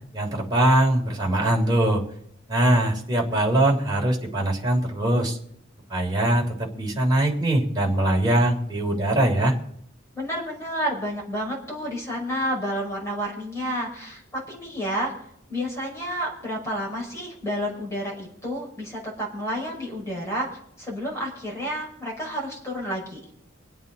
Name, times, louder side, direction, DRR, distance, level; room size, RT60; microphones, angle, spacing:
voice 1, 0.1-2.0 2.5-5.4 5.9-9.5, right 1 dB, 20° right, -2 dB, 3.2 m, -22 dB
voice 2, 10.1-15.1 15.5-20.5 20.8-23.2, equal, 15° left, -3 dB, 5.8 m, -30 dB
25.0 x 8.8 x 4.1 m, 0.70 s
head